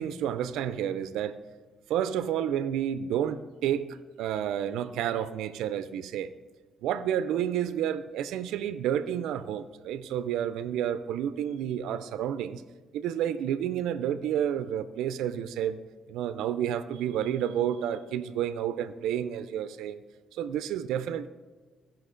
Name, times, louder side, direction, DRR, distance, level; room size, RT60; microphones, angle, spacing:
voice 1, 0.0-1.4 1.9-6.3 6.8-12.6 12.9-15.8 16.1-20.0 20.3-21.3, right 10 dB, 90° right, 12 dB, 0.4 m, -30 dB
16.0 x 5.8 x 3.7 m, 1.4 s
cardioid pair, 90°, 0 cm